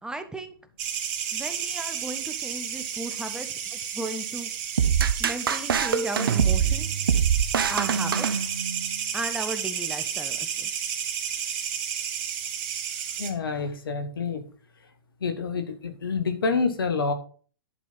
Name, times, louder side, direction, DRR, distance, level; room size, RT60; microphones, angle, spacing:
voice 1, 0.0-0.5 1.3-4.5 5.2-6.9 7.7-8.4 9.1-10.7, right 2 dB, 5° right, 9 dB, 1.1 m, -36 dB
sound 1, 0.8-13.3, right 8 dB, 45° right, 2.0 m, -32 dB
sound 2, 4.8-8.9, right 7 dB, 75° right, 0.9 m, -24 dB
voice 2, 13.2-14.4 15.2-17.1, left 4 dB, 80° left, 8 dB, 1.9 m, -27 dB
11.0 x 5.4 x 5.5 m, 0.42 s
hypercardioid pair, 115°, 12 cm